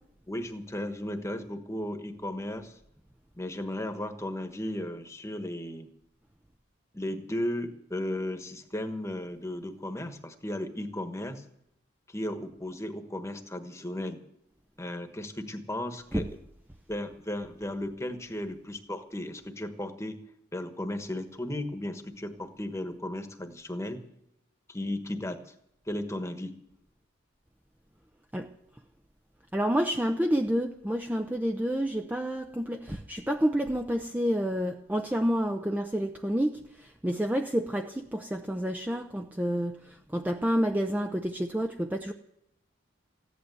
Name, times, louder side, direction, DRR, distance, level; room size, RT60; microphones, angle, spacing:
voice 1, 0.3-2.8 3.4-5.9 6.9-11.4 12.1-14.2 14.8-16.3 16.9-20.2 20.5-24.0 24.7-25.5 25.9-26.6, left 1 dB, 15° left, 1.2 m, -35 dB
voice 2, 29.5-42.1, equal, 10° right, 0.6 m, -29 dB
15.5 x 11.0 x 7.8 m
head